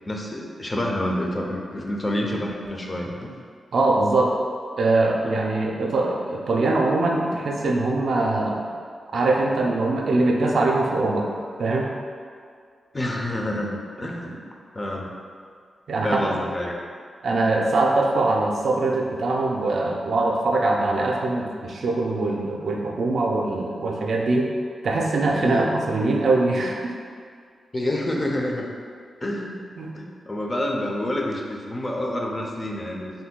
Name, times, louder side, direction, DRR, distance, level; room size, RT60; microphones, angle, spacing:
voice 1, 0.1-3.3 12.9-14.4 14.8-15.1 16.0-16.7 25.4-25.7 27.7-28.7 29.2-29.5 29.9-33.1, left 1 dB, 30° left, 0 dB, 0.4 m, -28 dB
voice 2, 3.7-4.3 4.8-8.6 9.1-11.3 11.6-11.9 13.5-13.6 15.9-16.4 17.2-24.5 24.8-26.9 29.8-29.9, right 2 dB, 70° right, 0 dB, 0.4 m, -22 dB
2.6 x 2.2 x 3.6 m, 2.1 s
cardioid pair, 70°, 0 cm